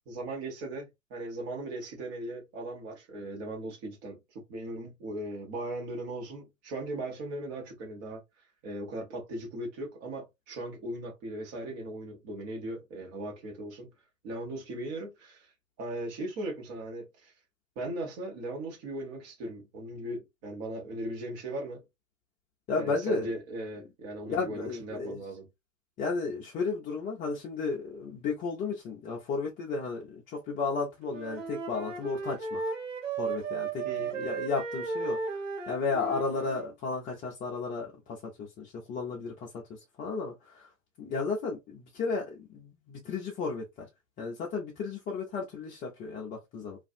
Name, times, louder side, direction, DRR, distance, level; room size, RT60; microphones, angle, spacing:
voice 1, 0.1-13.9 14.2-15.5 15.8-17.3 17.7-21.8 22.7-25.5 33.8-34.1, right 1 dB, 40° right, 1.3 m, -38 dB
voice 2, 22.7-23.3 24.2-25.2 26.0-32.7 33.2-35.4 35.7-40.7 41.0-43.9 44.2-46.8, left 4 dB, 20° left, 0.6 m, -34 dB
Wind instrument woodwind instrument, 31.1-36.7, right 5 dB, 65° right, 1.2 m, -35 dB
2.6 x 2.4 x 2.5 m
figure-of-eight pair, 100°, 40 cm